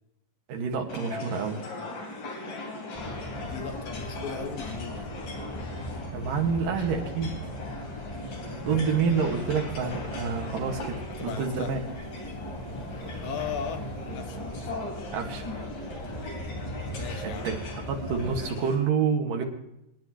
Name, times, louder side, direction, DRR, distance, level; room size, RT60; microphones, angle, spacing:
voice 1, 0.5-1.7 6.1-7.3 8.6-11.8 15.1-15.5 17.2-17.6 17.9-19.4, right 6 dB, 75° right, 3 dB, 3.5 m, -28 dB
sound 1, 0.9-18.8, left 2 dB, 85° left, 4.8 m, -40 dB
sound 2, 2.9-18.4, equal, 5° left, 6.4 m, -38 dB
voice 2, 3.5-5.2 8.6-8.9 11.2-11.8 13.2-13.9 14.1-14.4 17.0-17.4, left 8 dB, 65° left, 6 dB, 2.5 m, -37 dB
26.0 x 11.0 x 3.2 m, 0.85 s
omnidirectional pair, 3.9 m